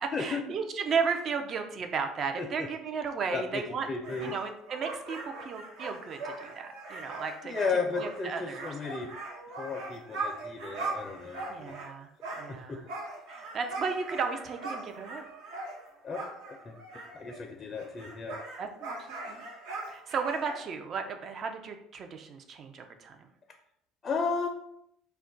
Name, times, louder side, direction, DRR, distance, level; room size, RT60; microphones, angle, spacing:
voice 1, 0.0-3.9 4.2-7.6 8.0-9.0 11.5-12.1 12.4-12.8 13.3-15.2 18.6-19.4 19.9-23.3, right 5 dB, 50° right, 6 dB, 0.4 m, -34 dB
voice 2, 3.3-3.6 3.9-4.3 7.5-9.1 9.6-11.8 12.5-12.8 16.0-16.8 17.1-18.4 24.0-24.5, left 4 dB, 35° left, 3 dB, 0.4 m, -34 dB
sound 1, 4.0-11.9 12.2-17.5 17.7-20.6, right 3 dB, 75° right, 0.7 m, -40 dB
2.3 x 2.1 x 3.8 m, 0.76 s
hypercardioid pair, 75°, 0 cm